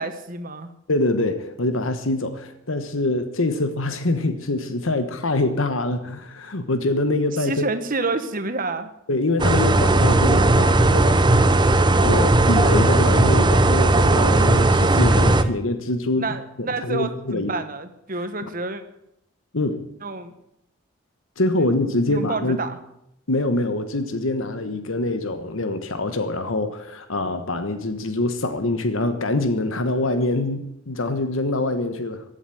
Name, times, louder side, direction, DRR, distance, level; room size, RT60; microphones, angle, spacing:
voice 1, 0.0-0.7 7.4-8.9 16.2-18.8 20.0-20.3 22.1-22.8, right 3 dB, 40° right, 10 dB, 1.3 m, -28 dB
voice 2, 0.9-7.7 9.1-11.2 12.0-16.3 16.6-17.5 18.2-18.3 19.5-19.8 21.4-22.6 23.3-32.2, left 2 dB, 75° left, 9 dB, 1.3 m, -24 dB
sound 1, 9.4-15.4, right 2 dB, 20° right, 0.7 m, -17 dB
15.5 x 8.1 x 9.8 m, 0.80 s
head